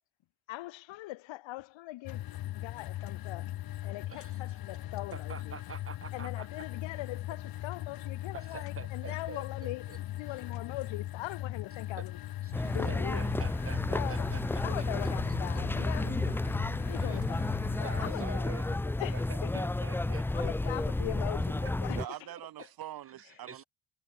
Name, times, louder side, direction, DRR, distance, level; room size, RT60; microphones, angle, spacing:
voice 1, 0.5-2.3 2.6-3.5 3.8-5.6 6.1-9.9 10.2-12.2 12.6-13.3 13.9-14.3 14.6-16.4 16.9-17.5 17.8-19.6 20.3-22.0, left 18 dB, 80° left, 3.5 m, -41 dB
sound 1, 2.1-18.1, left 14 dB, 50° left, 0.9 m, -39 dB
voice 2, 4.1-4.6 5.1-6.7 8.3-10.0 11.9-12.1 12.4-14.8 15.5-16.1 17.0-17.2 17.8-18.7 19.1-20.7 21.6-21.7 22.3-22.7 23.4-23.6, right 6 dB, 30° right, 2.7 m, -47 dB
sound 2, 12.5-22.1, left 2 dB, 5° left, 0.4 m, -31 dB
voice 3, 21.9-23.6, right 13 dB, 50° right, 1.0 m, -43 dB
cardioid pair, 110°, 45 cm